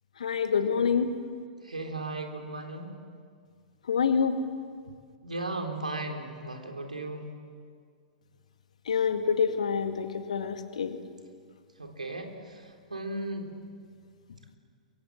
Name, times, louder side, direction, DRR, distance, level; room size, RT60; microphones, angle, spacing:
voice 1, 0.2-1.1 3.9-4.4 8.9-11.0, left 6 dB, 65° left, 7 dB, 2.1 m, -26 dB
voice 2, 1.6-3.0 5.2-7.3 11.8-13.5, right 2 dB, 80° right, 3 dB, 3.8 m, -36 dB
28.5 x 24.0 x 7.7 m, 2.1 s
figure-of-eight pair, 105°, 4 cm